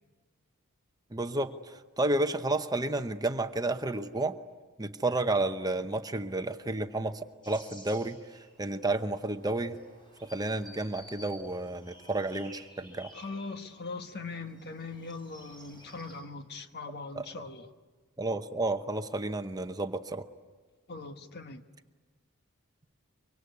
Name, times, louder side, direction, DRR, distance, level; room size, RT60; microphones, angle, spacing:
voice 1, 1.1-4.4 4.8-7.2 7.5-8.2 8.6-9.8 10.2-13.1 17.1-17.3 18.2-20.3, right 2 dB, 15° right, 8 dB, 0.8 m, -31 dB
sound 1, 7.4-16.2, left 1 dB, 20° left, 7.6 m, -54 dB
voice 2, 13.1-17.7 20.9-21.6, left 3 dB, 50° left, 7 dB, 1.4 m, -41 dB
24.5 x 24.0 x 9.6 m, 1.4 s
head